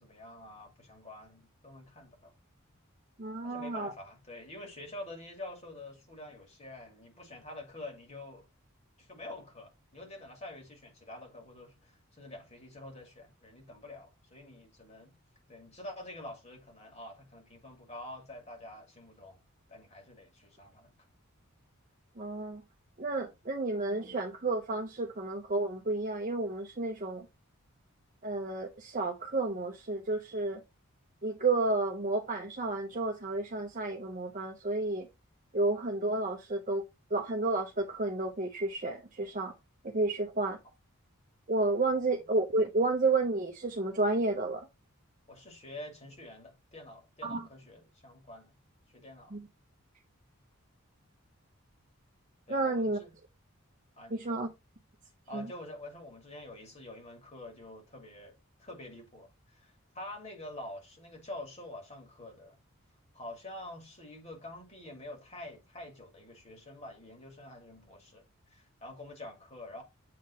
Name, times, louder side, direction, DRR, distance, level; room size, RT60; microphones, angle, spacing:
voice 1, 0.0-2.3 3.4-8.4 9.0-15.1 15.5-19.4 19.7-20.9 45.3-48.5 48.9-49.4 52.5-53.1 54.0-54.4 55.3-58.3 58.6-62.6 63.1-69.8, left 1 dB, 30° left, 2.3 m, -47 dB
voice 2, 3.2-3.9 22.2-22.6 23.0-27.3 28.2-30.6 31.2-35.1 35.5-36.8 37.1-39.5 39.8-40.6 41.5-44.7 47.2-47.5 49.3-49.5 52.5-53.0 54.1-54.5 55.3-55.5, right 2 dB, 35° right, 0.7 m, -31 dB
7.6 x 3.7 x 4.3 m
head